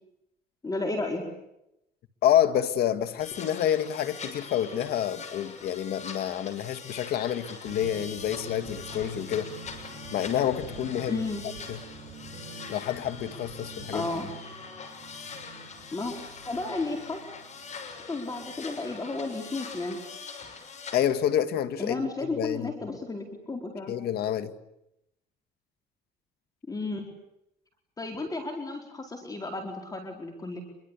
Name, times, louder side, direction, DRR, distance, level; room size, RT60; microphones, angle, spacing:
voice 1, 0.6-1.3 11.1-11.4 13.9-14.3 15.9-16.1 16.4-17.2 18.1-20.0 21.8-23.9 26.7-27.1 28.0-30.6, left 2 dB, 20° left, 3 dB, 4.7 m, -33 dB
voice 2, 2.2-9.5 10.1-11.2 11.7-11.8 12.7-14.1 20.9-22.7 23.9-24.5, left 10 dB, 70° left, 11 dB, 1.9 m, -28 dB
sound 1, 3.2-21.0, left 5 dB, 45° left, 6.4 m, -43 dB
sound 2, 7.6-18.6, right 2 dB, 35° right, 7.5 m, -46 dB
26.5 x 23.5 x 8.5 m, 0.83 s
cardioid pair, 110°, 17 cm